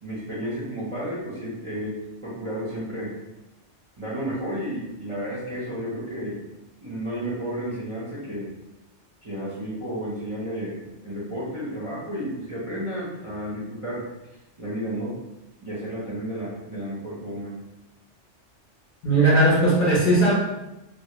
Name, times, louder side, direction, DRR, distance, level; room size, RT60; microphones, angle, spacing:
voice 1, 0.0-3.1 4.0-6.4 6.8-8.5 9.2-14.0 14.6-15.2 15.6-17.5, equal, 40° right, -9 dB, 0.5 m, -32 dB
voice 2, 19.0-20.3, right 1 dB, 55° left, -6 dB, 0.6 m, -18 dB
2.2 x 2.0 x 2.8 m, 0.96 s
omnidirectional pair, 1.2 m